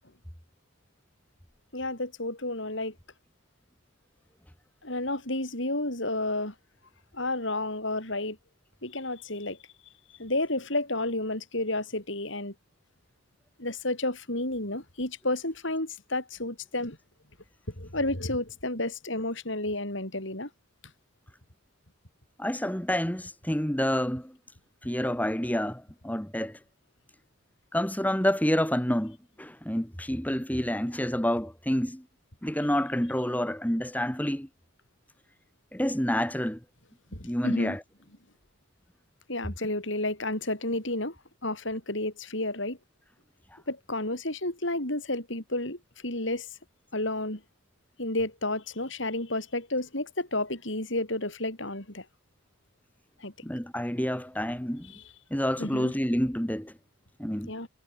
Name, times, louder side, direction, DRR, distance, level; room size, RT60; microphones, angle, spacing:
voice 1, 1.7-2.9 4.8-6.5 7.1-8.4 8.8-9.6 10.2-12.5 13.6-17.0 17.7-20.5 37.1-37.8 39.3-41.2 41.4-42.8 43.7-46.5 46.9-47.4 48.0-52.1 53.2-53.3 54.9-55.0 55.6-55.9 57.5-57.7, left 2 dB, 60° left, 6.1 m, -31 dB
voice 2, 22.4-24.4 24.8-26.6 27.7-32.0 32.4-34.5 35.7-36.6 37.2-37.8 43.5-43.6 53.4-54.9 55.3-56.7 57.2-57.5, equal, 5° left, 1.9 m, -28 dB
head